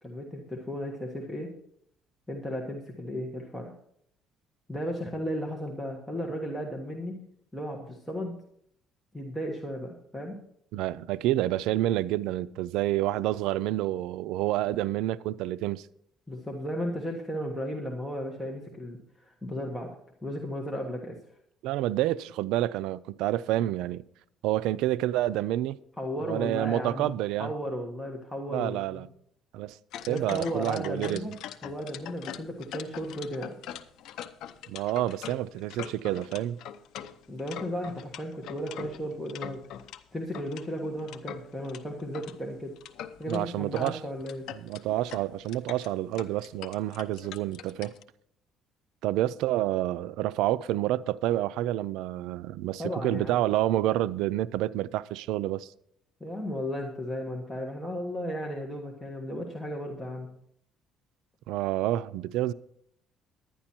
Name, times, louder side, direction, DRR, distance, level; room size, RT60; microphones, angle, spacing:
voice 1, 0.0-1.5 2.3-3.7 4.7-7.2 7.5-8.4 9.1-10.4 16.3-20.0 20.2-21.2 26.0-29.1 30.1-31.3 31.6-33.6 37.3-39.6 40.1-42.7 43.2-44.5 52.8-53.4 56.2-60.3, equal, 5° left, 1.4 m, -35 dB
voice 2, 10.7-15.9 21.6-24.0 24.4-25.8 26.3-27.5 28.5-29.1 29.5-29.8 30.0-31.2 34.7-36.6 43.3-44.0 44.6-47.9 49.0-55.7 61.5-62.5, right 14 dB, 85° right, 0.3 m, -28 dB
sound 1, 29.9-40.0 40.3-42.4 42.8-43.4 43.8-43.9 44.2-48.0, left 10 dB, 75° left, 0.7 m, -42 dB
11.0 x 10.0 x 4.4 m
cardioid pair, 125°, 0 cm